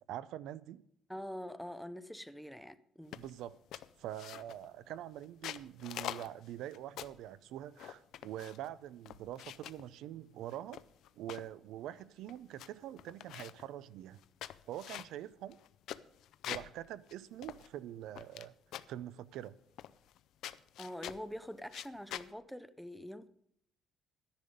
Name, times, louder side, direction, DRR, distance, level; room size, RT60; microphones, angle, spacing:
voice 1, 0.1-0.8 3.1-3.6 4.0-10.8 11.2-14.2 14.7-15.6 16.5-18.5 18.9-19.6, right 12 dB, 80° right, 0.5 m, -45 dB
voice 2, 1.1-3.2 20.8-23.3, equal, ahead, 0.5 m, -45 dB
sound 1, 3.1-3.4 3.7-4.7 5.2-7.3 7.8-8.7 9.1-9.8 10.5-11.5 12.0-12.1 12.3-12.7 13.0-13.7 14.2-16.8 17.1-17.2 17.4-18.5 18.7-19.0 19.8-20.2 20.4-21.3 21.7-22.3, left 12 dB, 65° left, 0.5 m, -45 dB
12.0 x 10.5 x 5.2 m
cardioid pair, 165°, 0 cm